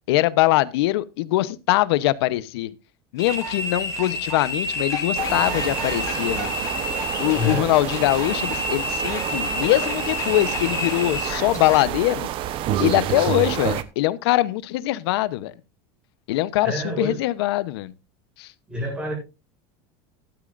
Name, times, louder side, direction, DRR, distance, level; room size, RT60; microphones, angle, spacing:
voice 1, 0.1-2.7 3.1-6.6 7.2-12.3 12.8-15.5 16.3-17.9 18.4-18.5, left 17 dB, 80° left, 0.9 m, -22 dB
sound 1, 3.2-11.9, left 2 dB, 25° left, 4.9 m, -29 dB
sound 2, 5.2-13.8, right 11 dB, 40° right, 1.0 m, -29 dB
voice 2, 7.3-7.7 16.6-17.2 18.7-19.1, left 2 dB, 10° right, 7.1 m, -27 dB
15.5 x 12.0 x 2.5 m
supercardioid pair, 150°, 13 cm